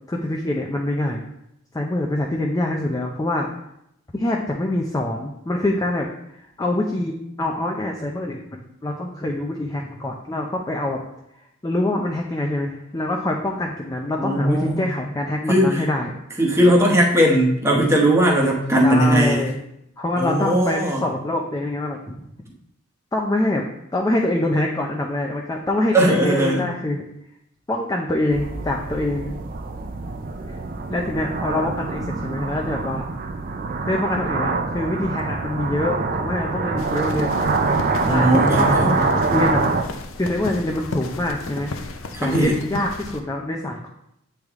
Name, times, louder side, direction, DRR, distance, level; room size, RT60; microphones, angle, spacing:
voice 1, 0.1-1.2 1.7-3.5 4.1-6.1 6.4-11.0 11.6-16.1 18.8-19.6 20.0-22.0 23.1-23.6 23.9-27.0 27.7-29.3 30.9-33.0 33.9-37.4 38.1-39.6 40.2-41.7 42.2-43.9, left 1 dB, 15° left, 0 dB, 0.4 m, -25 dB
voice 2, 14.2-14.9 15.5-15.8 16.4-19.5 20.2-21.0 25.9-26.7 38.0-39.0 42.1-42.6, right 1 dB, 15° right, -1 dB, 1.0 m, -18 dB
sound 1, 28.3-39.8, right 3 dB, 45° right, 0.4 m, -24 dB
sound 2, 36.8-43.2, left 3 dB, 85° left, 0.6 m, -33 dB
8.0 x 3.4 x 3.5 m, 0.80 s
head